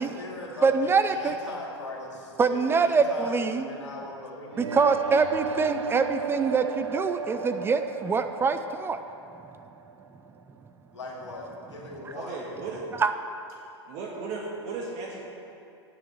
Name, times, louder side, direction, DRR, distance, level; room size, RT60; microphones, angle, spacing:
voice 1, 0.0-4.6 10.9-12.4, left 2 dB, 85° left, -2 dB, 2.4 m, -39 dB
voice 2, 0.6-1.4 2.4-3.7 4.6-9.0 13.0-13.1, right 5 dB, 15° right, 9 dB, 0.4 m, -24 dB
sound 1, 4.5-10.4, right 5 dB, 90° right, 0.5 m, -35 dB
voice 3, 12.1-12.8 13.9-15.2, right 4 dB, 45° right, -2 dB, 1.7 m, -35 dB
8.8 x 7.5 x 7.1 m, 2.7 s
hypercardioid pair, 100°, 15 cm